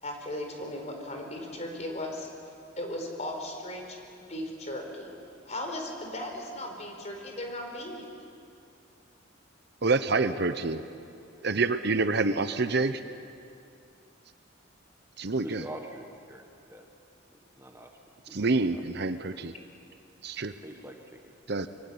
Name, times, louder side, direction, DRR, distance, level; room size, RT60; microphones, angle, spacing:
voice 1, 0.0-2.3 2.8-4.0 4.3-5.1 5.5-8.0 10.3-10.4 20.6-20.8, left 1 dB, 35° left, 2 dB, 4.5 m, -37 dB
voice 2, 9.8-10.8 11.4-13.0 15.2-15.6 18.3-19.5 20.2-20.5 21.5-21.7, right 3 dB, 55° right, 11 dB, 0.9 m, -27 dB
voice 3, 15.4-16.4 16.7-16.8 17.6-17.9 18.3-18.4 18.7-18.8 20.6-21.3, right 1 dB, 15° right, 3 dB, 1.4 m, -44 dB
25.0 x 24.0 x 8.8 m, 2.5 s
head